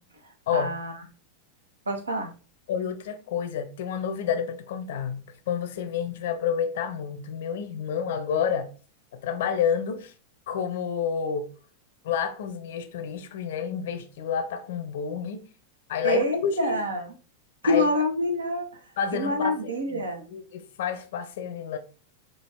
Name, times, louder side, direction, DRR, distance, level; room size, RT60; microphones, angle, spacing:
voice 1, 0.5-0.9 1.9-2.3 16.0-17.1 17.6-18.7 19.1-20.2, left 1 dB, 75° right, 0.8 m, -26 dB
voice 2, 2.7-8.7 9.1-10.1 10.5-11.5 12.0-15.4 15.9-16.7 17.6-17.9 19.0-19.5 19.9-21.8, left 7 dB, 55° left, 0.5 m, -29 dB
4.7 x 2.4 x 3.4 m
figure-of-eight pair, 90°, 0 cm